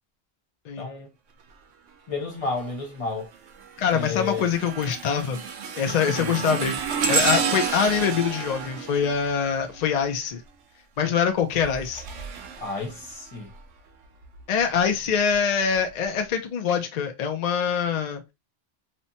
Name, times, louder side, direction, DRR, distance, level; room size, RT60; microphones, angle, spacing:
voice 1, 0.8-1.1 2.1-3.3 3.9-4.5 6.1-6.4 12.6-13.5, left 3 dB, 30° left, 0.9 m, -31 dB
sound 1, 2.4-2.8 3.3-10.1 11.4-13.6 14.2-14.4 15.3-15.4, right 6 dB, 85° right, 0.9 m, -30 dB
voice 2, 3.8-5.4 5.8-6.7 7.1-10.4 11.0-12.0 14.5-18.2, left 7 dB, 75° left, 0.3 m, -24 dB
2.8 x 2.1 x 2.6 m
omnidirectional pair, 1.2 m